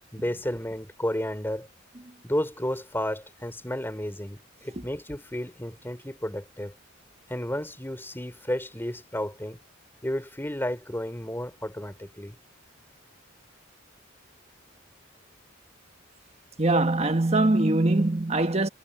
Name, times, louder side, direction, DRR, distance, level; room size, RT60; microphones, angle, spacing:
voice 1, 0.1-1.7 2.2-6.7 7.3-9.6 10.0-12.4, left 1 dB, 10° left, 3.8 m, -32 dB
voice 2, 16.6-18.7, right 2 dB, 30° right, 1.3 m, -22 dB
head